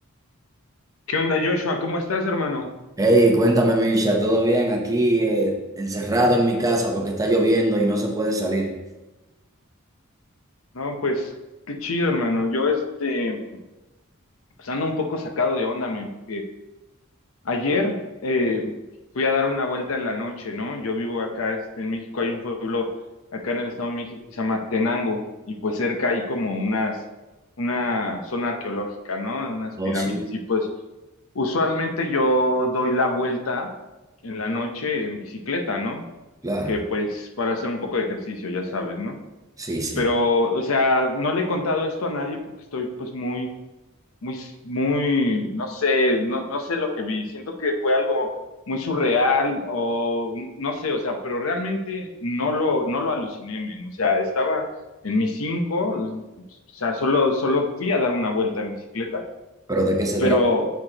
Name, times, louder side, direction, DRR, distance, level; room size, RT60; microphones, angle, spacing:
voice 1, 1.1-2.7 10.7-11.3 11.7-13.6 14.6-16.5 17.4-18.0 18.2-18.7 19.1-22.9 23.3-25.2 25.5-27.0 27.6-30.7 31.3-33.7 34.2-36.0 36.7-39.2 40.0-42.4 42.7-43.5 44.2-48.3 48.7-54.7 55.0-56.2 56.7-59.2 60.2-60.7, left 2 dB, 80° left, 5 dB, 0.7 m, -25 dB
voice 2, 3.0-8.7 29.8-30.3 36.4-36.7 39.6-40.0 59.7-60.4, right 1 dB, 15° right, 1 dB, 0.8 m, -21 dB
7.9 x 4.8 x 2.9 m, 1.1 s
head